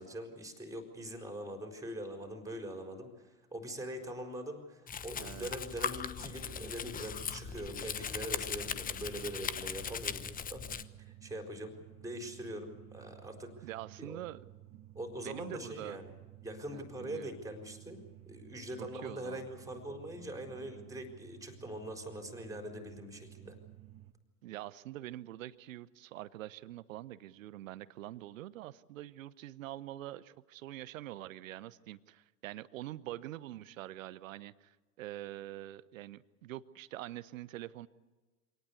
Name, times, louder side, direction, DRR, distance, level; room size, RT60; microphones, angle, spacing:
voice 1, 0.0-10.7 11.1-13.7 14.0-14.2 14.9-16.1 16.4-18.0 18.3-23.6, right 1 dB, 5° right, 4 dB, 4.4 m, -43 dB
Domestic sounds home sounds, 4.9-10.8, left 7 dB, 20° left, 1.0 m, -39 dB
voice 2, 5.1-5.5 13.6-14.4 15.2-16.0 16.7-17.4 18.8-19.4 24.4-37.9, right 14 dB, 60° right, 18 dB, 1.0 m, -45 dB
sound 1, 6.2-24.1, right 14 dB, 30° right, 1.5 m, -54 dB
25.0 x 18.5 x 8.3 m, 1.2 s
figure-of-eight pair, 85°, 44 cm